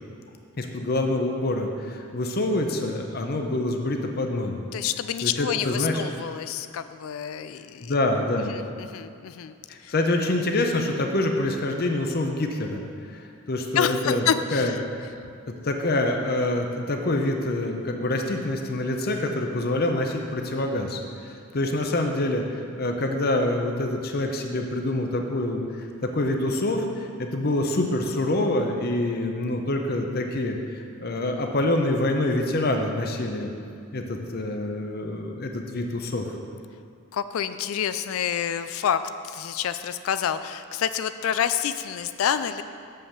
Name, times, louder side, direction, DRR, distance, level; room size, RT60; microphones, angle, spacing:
voice 1, 0.6-4.6 5.2-6.0 7.8-8.5 9.7-12.8 13.1-14.3 14.5-15.1 15.6-33.5 33.9-36.4, left 1 dB, 45° left, 3 dB, 0.7 m, -26 dB
voice 2, 4.7-7.9 8.4-9.6 9.8-9.9 13.7-14.8 37.1-42.6, left 8 dB, 80° left, 12 dB, 0.3 m, -28 dB
7.3 x 5.6 x 6.5 m, 2.4 s
head